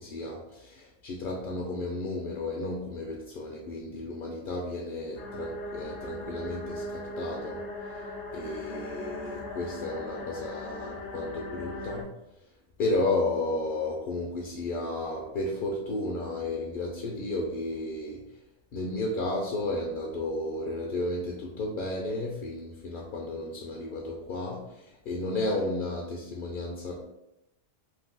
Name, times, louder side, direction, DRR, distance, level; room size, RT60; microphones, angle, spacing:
voice 1, 0.0-7.6 8.3-12.1 12.8-18.2 18.7-27.0, left 2 dB, 60° left, -1 dB, 0.6 m, -33 dB
sound 1, 5.2-12.0, left 1 dB, 75° left, 0.9 m, -39 dB
2.7 x 2.2 x 3.5 m, 0.84 s
omnidirectional pair, 1.2 m